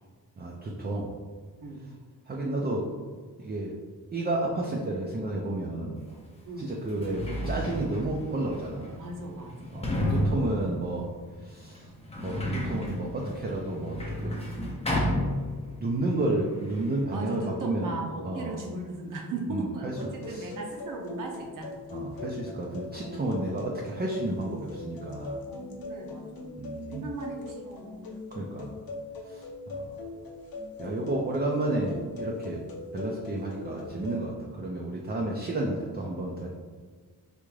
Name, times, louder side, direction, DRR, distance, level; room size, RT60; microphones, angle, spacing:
voice 1, 0.4-1.1 2.3-2.9 3.4-3.8 4.1-6.0 6.6-9.0 9.7-11.1 11.4-11.9 12.2-14.4 15.7-18.0 18.2-18.6 19.5-20.0 20.3-20.5 21.9-25.4 26.6-27.1 28.3-28.7 29.2-30.0 30.8-32.6 32.9-36.5, right 2 dB, 25° right, -2 dB, 0.4 m, -31 dB
Sliding door, 6.1-6.2 6.8-16.0 16.2-17.0, left 1 dB, 15° left, 0.6 m, -32 dB
voice 2, 6.4-6.9 8.9-9.8 17.1-21.7 25.5-28.1, right 2 dB, 60° right, 0 dB, 0.7 m, -38 dB
sound 1, 20.0-34.2, left 3 dB, 70° left, 0.6 m, -41 dB
3.5 x 2.5 x 3.1 m, 1.5 s
wide cardioid pair, 115°, 37 cm